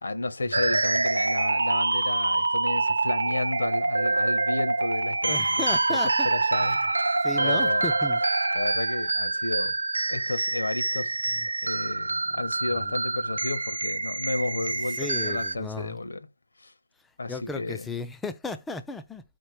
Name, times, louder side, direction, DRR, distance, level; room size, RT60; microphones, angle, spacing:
voice 1, 0.0-6.0 6.2-7.8 8.5-9.8 10.1-11.2 11.6-16.3 16.6-16.7 17.2-17.9, left 2 dB, 60° left, 0.9 m, -32 dB
sound 1, 0.5-15.5, right 3 dB, 70° right, 0.7 m, -26 dB
voice 2, 5.3-6.3 7.2-8.2 12.7-12.9 15.0-16.0 17.3-19.2, left 3 dB, 5° left, 0.3 m, -35 dB
4.6 x 4.4 x 4.7 m
figure-of-eight pair, 165°, 0 cm